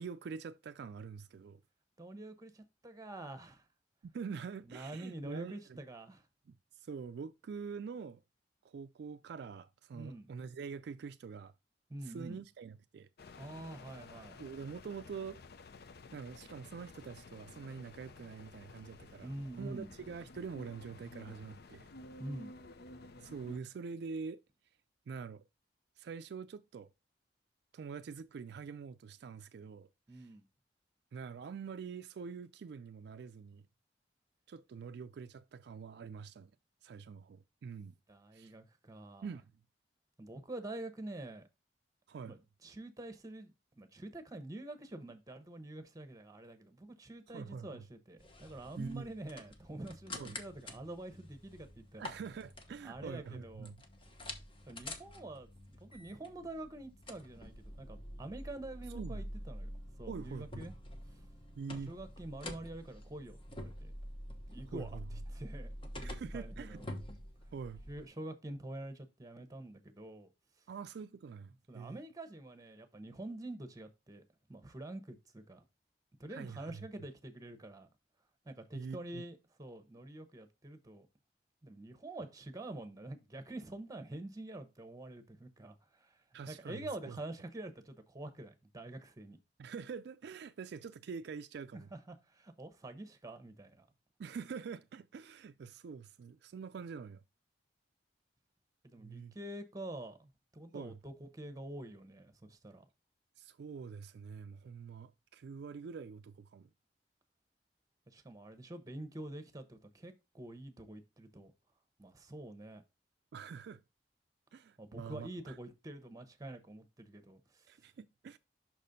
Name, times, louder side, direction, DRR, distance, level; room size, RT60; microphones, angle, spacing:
voice 1, 0.0-1.6 4.0-5.8 6.5-8.2 8.6-11.5 12.0-13.1 14.4-15.4 16.1-19.3 19.6-21.9 23.2-24.4 25.1-25.5 26.0-26.9 27.7-30.3 31.1-33.7 34.5-36.5 36.8-37.9 38.3-38.5 39.2-39.5 42.1-42.4 47.3-47.9 48.8-49.1 50.2-50.4 52.0-53.8 58.9-59.2 60.1-60.7 61.6-61.9 64.7-65.1 66.0-66.8 67.5-67.8 70.7-72.0 76.3-76.8 78.7-79.2 86.3-87.2 89.6-91.9 94.2-97.2 99.0-99.4 100.7-101.0 103.4-106.7 113.3-113.8 114.5-115.6 117.7-118.4, right 5 dB, 65° right, 0.3 m, -45 dB
voice 2, 2.0-3.6 4.7-6.3 9.9-10.3 11.9-12.4 13.4-14.4 19.2-19.9 22.2-22.5 30.1-30.4 38.1-39.3 40.2-41.4 42.2-52.2 52.8-53.7 54.7-59.7 60.0-60.7 61.9-63.9 64.5-65.0 65.3-66.9 67.9-70.3 71.7-74.2 74.5-75.6 76.2-77.9 78.4-81.1 81.6-89.4 91.7-93.9 98.8-102.8 108.1-111.5 112.0-112.8 114.8-117.7, right 1 dB, 20° right, 0.9 m, -47 dB
sound 1, 13.2-23.6, left 3 dB, 60° left, 0.6 m, -53 dB
sound 2, 48.2-68.1, left 1 dB, 30° left, 1.0 m, -47 dB
5.9 x 4.2 x 5.2 m
head